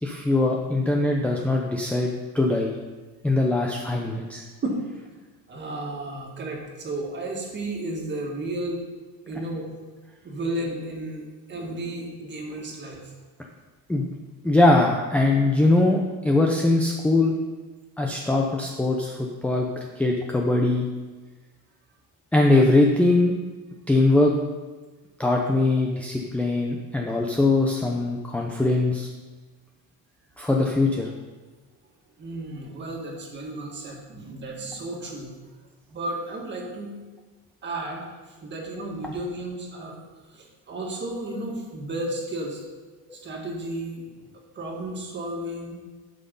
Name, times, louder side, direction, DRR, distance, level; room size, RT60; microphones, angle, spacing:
voice 1, 0.0-2.7 3.2-4.4 13.9-14.1 14.4-17.3 18.0-19.7 20.0-20.9 22.3-23.3 23.9-24.3 25.2-29.1 30.4-31.1, left 2 dB, 5° left, 0 dB, 0.6 m, -21 dB
voice 2, 5.5-8.9 9.3-9.7 10.2-11.2 11.5-13.1 32.2-35.3 35.9-36.9 37.6-40.0 40.3-42.6 43.1-44.0 44.5-45.8, right 1 dB, 30° right, 0 dB, 1.9 m, -33 dB
11.5 x 6.3 x 5.4 m, 1.3 s
cardioid pair, 165°, 38 cm